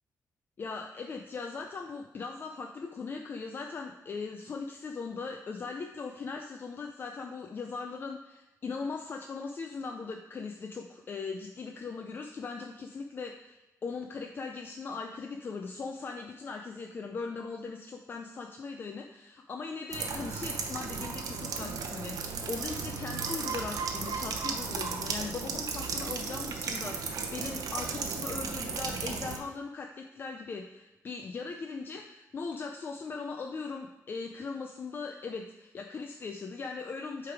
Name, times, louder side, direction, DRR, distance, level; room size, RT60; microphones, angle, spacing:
voice 1, 0.6-37.3, left 4 dB, 35° left, 3 dB, 0.4 m, -39 dB
sound 1, 19.9-29.4, right 5 dB, 80° right, 0.7 m, -35 dB
8.1 x 3.4 x 4.7 m, 1.0 s
wide cardioid pair, 170°, 6 cm